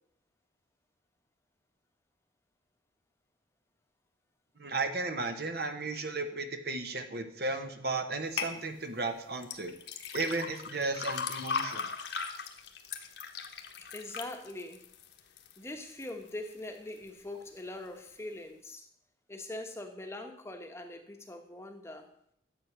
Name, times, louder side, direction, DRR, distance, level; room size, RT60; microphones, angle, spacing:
voice 1, 4.6-9.7 10.1-11.9, right 3 dB, 55° right, 7 dB, 1.2 m, -34 dB
sound 1, 8.4-8.5 9.4-15.6 16.0-16.5 17.0-17.1, left 5 dB, 60° left, 1.3 m, -37 dB
voice 2, 13.9-14.8 15.6-18.9 19.3-22.1, left 1 dB, 15° left, 4 dB, 1.1 m, -42 dB
12.0 x 8.1 x 6.1 m, 0.70 s
head